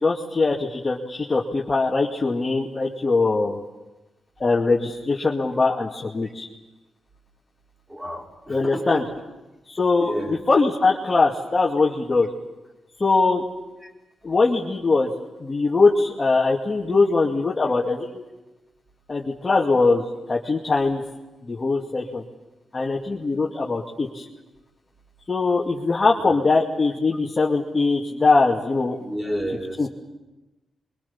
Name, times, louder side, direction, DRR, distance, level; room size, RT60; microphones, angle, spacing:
voice 1, 0.0-3.6 4.4-6.5 8.5-9.0 9.7-10.1 10.5-12.3 13.0-13.4 14.2-15.1 15.4-18.2 19.1-20.0 20.3-21.0 21.5-22.2 22.7-24.2 25.3-29.0 29.8-29.9, left 3 dB, 30° left, -2 dB, 2.4 m, -21 dB
voice 2, 7.9-9.1 10.0-10.4 13.8-13.9 26.2-26.3 29.0-29.9, equal, 15° right, 0 dB, 5.1 m, -31 dB
27.5 x 24.0 x 7.2 m, 1.1 s
cardioid pair, 95°, 0 cm